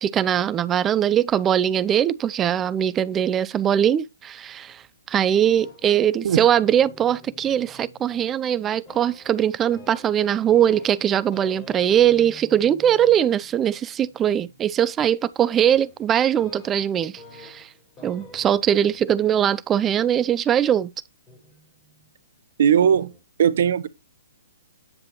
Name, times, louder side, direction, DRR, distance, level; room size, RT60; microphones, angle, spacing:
voice 1, 0.0-4.8 5.1-17.7 18.0-20.9, right 10 dB, 20° right, 0.5 m, -21 dB
sound 1, 5.4-8.5 8.9-20.4 21.3-22.1 22.8-23.2, left 2 dB, 20° left, 5.9 m, -48 dB
voice 2, 22.6-23.1 23.4-23.9, right 8 dB, 60° right, 0.8 m, -18 dB
9.7 x 7.7 x 3.1 m
figure-of-eight pair, 125°, 0 cm